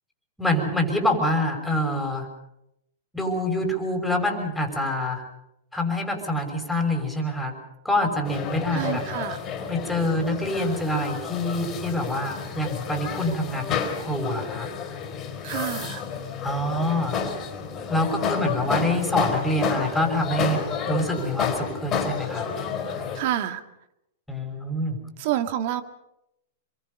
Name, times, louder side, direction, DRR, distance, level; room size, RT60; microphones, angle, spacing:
voice 1, 0.4-2.3 3.1-5.2 5.7-7.5 7.8-9.0 9.7-14.7 16.4-17.2 17.9-20.6 20.9-22.5 24.3-25.0, left 1 dB, 5° left, 3 dB, 6.0 m, -26 dB
sound 1, 8.2-23.2, left 6 dB, 30° left, 4.1 m, -30 dB
voice 2, 8.7-9.4 15.4-16.0 23.2-23.6 25.2-25.8, right 12 dB, 55° right, 9 dB, 1.9 m, -28 dB
27.0 x 23.0 x 5.4 m, 0.83 s
hypercardioid pair, 115°, 0 cm